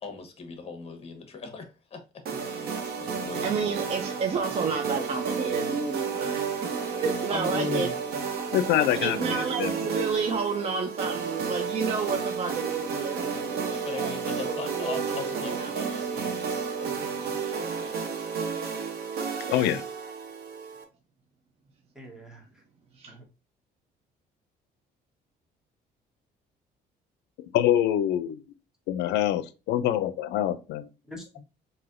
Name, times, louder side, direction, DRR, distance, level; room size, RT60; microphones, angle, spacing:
voice 1, 0.0-2.0 2.4-2.7 3.0-3.7 13.7-18.0, left 4 dB, 35° left, 1.0 m, -41 dB
sound 1, 2.2-20.8, right 5 dB, 65° right, 0.8 m, -32 dB
voice 2, 3.4-7.9 9.0-14.2 14.4-15.8 19.4-19.7 22.9-23.2, right 5 dB, 35° right, 0.5 m, -31 dB
voice 3, 7.3-8.0 9.0-9.3 21.9-22.6 23.1-23.2 31.1-31.4, left 3 dB, 5° right, 1.1 m, -36 dB
voice 4, 8.5-9.9 19.5-19.8 27.4-28.4 28.9-30.9, left 11 dB, 80° left, 0.4 m, -25 dB
3.2 x 2.6 x 2.5 m
cardioid pair, 110°, 17 cm